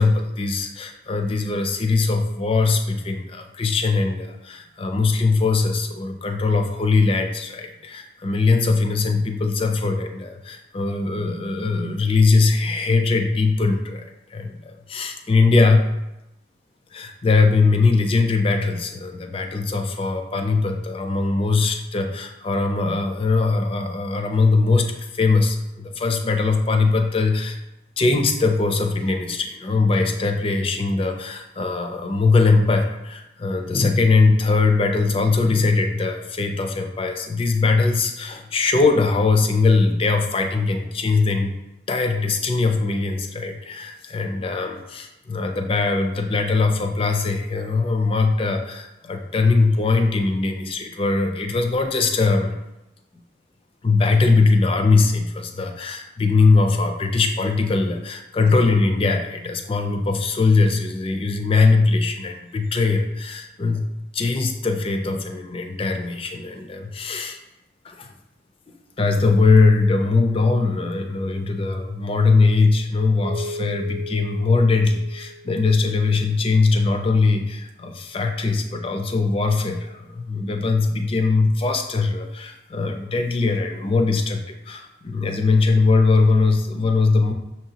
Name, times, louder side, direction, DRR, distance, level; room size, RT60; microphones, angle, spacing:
voice 1, 0.0-14.0 14.3-15.8 16.9-27.6 28.0-41.5 41.9-52.5 53.8-63.8 64.1-67.4 67.8-68.1 69.0-87.3, left 3 dB, 30° left, 5 dB, 0.4 m, -21 dB
Keyboard (musical), 73.2-76.2, left 1 dB, 65° right, 0.4 m, -36 dB
6.3 x 2.9 x 2.8 m, 0.93 s
head